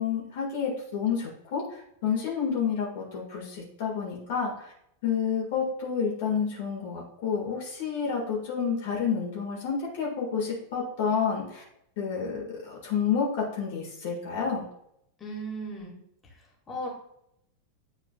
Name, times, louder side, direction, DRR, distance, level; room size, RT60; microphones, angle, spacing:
voice 1, 0.0-4.7 5.0-11.6 12.0-14.6, left 6 dB, 50° left, -3 dB, 1.8 m, -29 dB
voice 2, 15.2-15.9 16.7-16.9, right 1 dB, 20° left, -3 dB, 2.1 m, -35 dB
9.4 x 4.5 x 2.4 m, 0.74 s
figure-of-eight pair, 90°, 0 cm